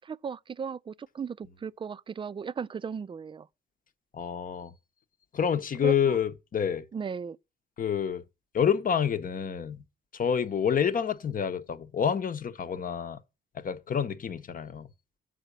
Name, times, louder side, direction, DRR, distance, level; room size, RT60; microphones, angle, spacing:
voice 1, 0.0-3.5 5.8-6.2 6.9-7.4, right 6 dB, 25° right, 0.4 m, -36 dB
voice 2, 4.1-4.7 5.3-6.9 7.8-8.2 8.5-9.8 10.1-13.2 13.5-14.9, left 7 dB, 45° left, 0.9 m, -28 dB
8.0 x 5.0 x 6.7 m
cardioid pair, 90°, 20 cm